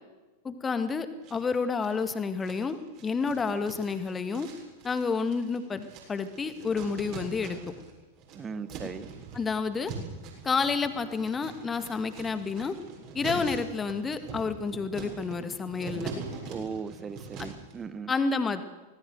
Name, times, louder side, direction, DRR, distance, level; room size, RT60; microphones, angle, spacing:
voice 1, 0.4-4.5 4.8-7.6 9.3-9.9 10.4-12.7 13.1-16.1 17.4-17.5 18.1-18.6, left 4 dB, 15° left, 10 dB, 2.0 m, -30 dB
sound 1, 1.2-2.0 2.4-7.9 8.1-17.7, right 4 dB, 40° right, 7.3 m, -42 dB
voice 2, 8.3-9.1 16.5-18.1, right 6 dB, 20° right, 15 dB, 1.3 m, -38 dB
25.5 x 19.0 x 7.9 m, 1.2 s
figure-of-eight pair, 90°, 0 cm